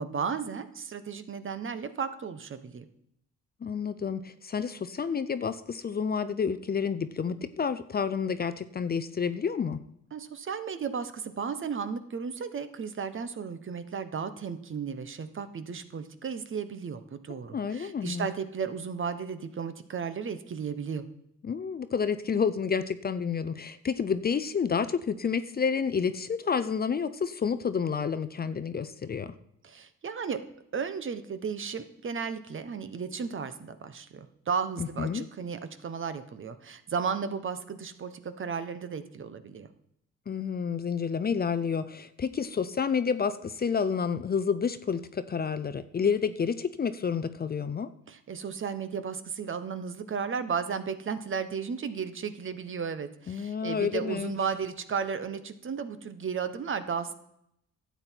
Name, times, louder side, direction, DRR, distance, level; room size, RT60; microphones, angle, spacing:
voice 1, 0.0-2.8 10.1-21.0 29.6-30.4 30.7-39.7 48.1-57.1, right 6 dB, 40° right, 11 dB, 1.0 m, -34 dB
voice 2, 3.6-9.8 17.5-18.3 21.4-29.3 34.8-35.2 40.3-47.9 53.3-54.4, left 6 dB, 30° left, 13 dB, 0.6 m, -29 dB
12.0 x 8.2 x 4.5 m, 0.77 s
cardioid pair, 90°, 30 cm